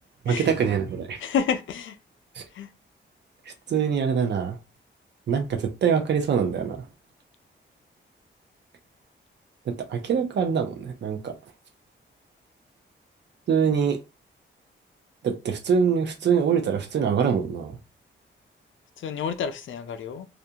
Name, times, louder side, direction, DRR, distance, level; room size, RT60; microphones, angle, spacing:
voice 1, 0.3-1.2 2.4-2.5 3.7-4.6 5.3-6.8 9.7-11.3 13.5-14.0 15.2-17.7, right 7 dB, 60° right, 0.5 m, -24 dB
voice 2, 1.2-2.0 2.5-2.7 19.0-20.3, left 7 dB, 75° left, 0.4 m, -29 dB
2.5 x 2.2 x 2.7 m
wide cardioid pair, 145°, 20 cm